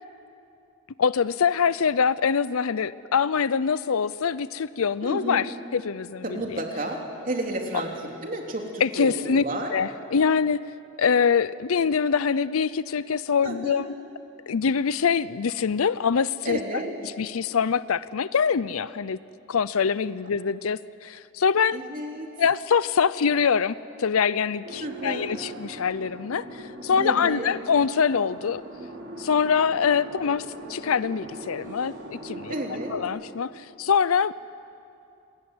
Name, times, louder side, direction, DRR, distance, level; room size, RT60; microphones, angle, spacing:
voice 1, 1.0-6.2 6.5-6.6 8.8-9.4 9.7-10.6 11.0-13.9 14.5-16.6 17.2-19.2 19.5-21.8 22.4-28.6 29.2-32.5 32.9-34.3, left 6 dB, 85° left, 17 dB, 0.5 m, -24 dB
voice 2, 5.0-5.4 6.2-9.8 13.4-13.8 16.4-16.9 21.7-22.3 24.8-25.4 27.0-27.5 32.5-32.9, right 1 dB, 40° right, 1 dB, 3.6 m, -32 dB
sound 1, 24.6-33.0, right 1 dB, 60° right, 5.6 m, -40 dB
27.5 x 20.5 x 9.7 m, 2.6 s
head